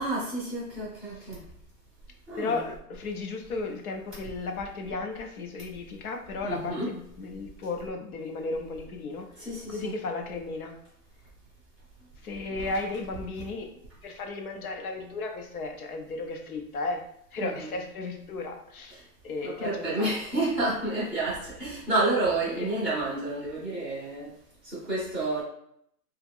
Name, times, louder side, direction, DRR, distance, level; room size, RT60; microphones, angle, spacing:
voice 1, 0.0-1.5 2.3-2.6 6.4-6.9 9.4-9.9 12.5-12.7 17.4-17.7 18.9-19.1 19.4-24.4 24.6-25.4, right 2 dB, ahead, -13 dB, 0.6 m, -30 dB
voice 2, 2.4-10.8 12.2-13.7 14.0-20.1 22.6-22.7, left 3 dB, 60° left, 3 dB, 0.8 m, -35 dB
2.8 x 2.3 x 3.5 m, 0.73 s
hypercardioid pair, 155°, 48 cm